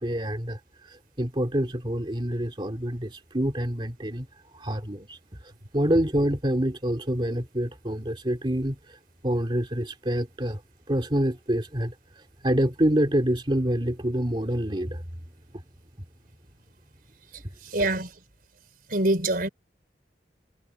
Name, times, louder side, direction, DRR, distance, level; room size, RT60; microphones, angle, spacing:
voice 1, 0.0-4.3 4.5-9.0 9.2-10.6 10.9-15.0, equal, 30° right, 2.6 m, -27 dB
voice 2, 17.3-18.2 18.9-19.5, right 2 dB, 55° right, 5.3 m, -26 dB
head